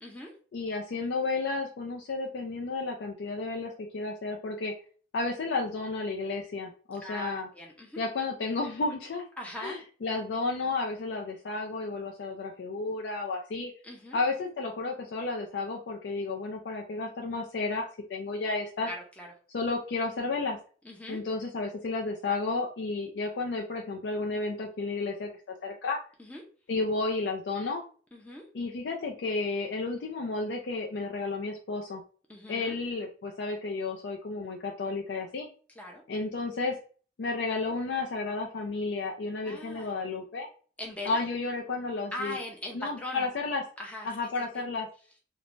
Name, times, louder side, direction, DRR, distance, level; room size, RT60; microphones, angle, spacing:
voice 1, 0.0-0.3 7.0-8.0 9.4-9.8 13.8-14.2 18.8-19.3 20.8-21.2 26.2-26.4 28.1-28.4 32.3-32.8 35.8-36.0 39.4-39.9 40.8-41.2 42.1-43.3 43.8-44.6, left 1 dB, 10° left, -1 dB, 0.4 m, -40 dB
voice 2, 0.5-4.7 5.1-7.5 8.0-9.3 9.6-13.7 14.1-18.9 19.5-20.6 21.1-26.0 26.7-27.8 28.5-32.0 32.5-35.5 36.1-36.8 37.2-40.5 41.1-42.4 42.7-43.6 44.0-44.9, left 3 dB, 80° left, 0 dB, 0.4 m, -32 dB
3.1 x 2.1 x 2.4 m, 0.41 s
head